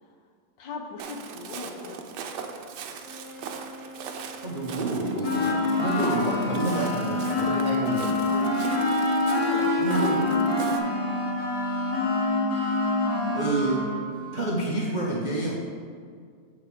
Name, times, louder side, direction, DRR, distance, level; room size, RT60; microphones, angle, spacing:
voice 1, 0.6-2.2 7.5-7.7 8.3-10.0, left 3 dB, 80° left, 3 dB, 1.5 m, -39 dB
Walk footsteps, 1.0-10.8, right 6 dB, 75° right, 1.2 m, -40 dB
Wind instrument woodwind instrument, 3.0-7.0, equal, 40° left, 2.4 m, -45 dB
voice 2, 4.4-8.4 9.8-10.3 13.3-13.9 14.3-15.6, right 2 dB, 45° right, -4 dB, 0.6 m, -28 dB
sound 1, 5.2-14.1, left 2 dB, 60° left, 1.6 m, -26 dB
7.6 x 5.0 x 5.0 m, 2.1 s
omnidirectional pair, 1.9 m